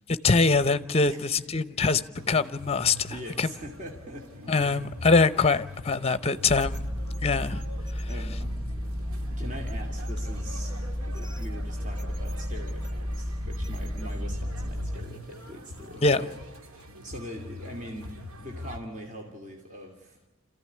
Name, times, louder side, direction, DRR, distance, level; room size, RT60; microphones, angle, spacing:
voice 1, 0.2-2.0 2.3-3.5 4.5-6.8 7.2-7.6 8.0-8.1 16.0-16.2, left 4 dB, 30° left, 0.8 m, -23 dB
voice 2, 1.1-1.6 2.2-2.3 2.9-4.9 8.1-8.5 9.3-10.7 11.0-16.3 16.6-18.1 18.4-20.2, equal, 35° right, 2.6 m, -42 dB
sound 1, 2.1-18.8, left 1 dB, 75° right, 2.0 m, -44 dB
sound 2, 6.5-15.0, equal, 20° right, 1.0 m, -32 dB
27.0 x 15.0 x 9.8 m
head